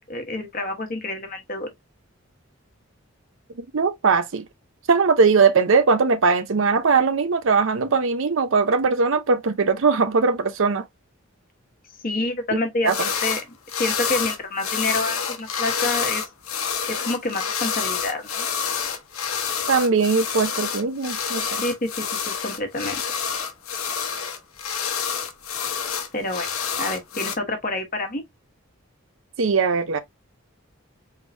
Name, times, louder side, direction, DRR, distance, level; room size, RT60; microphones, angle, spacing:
voice 1, 0.1-1.7 12.0-12.9 13.2-13.4 13.8-16.2 16.9-18.5 21.6-23.0 26.1-26.5 26.8-28.2, left 2 dB, 40° left, 1.2 m, -28 dB
voice 2, 3.7-4.4 4.9-10.9 12.8-13.0 19.7-21.6 29.4-30.0, right 4 dB, 65° right, 0.6 m, -20 dB
sound 1, 12.9-13.4 13.7-27.3, left 7 dB, 80° left, 1.0 m, -28 dB
4.7 x 3.6 x 2.6 m
head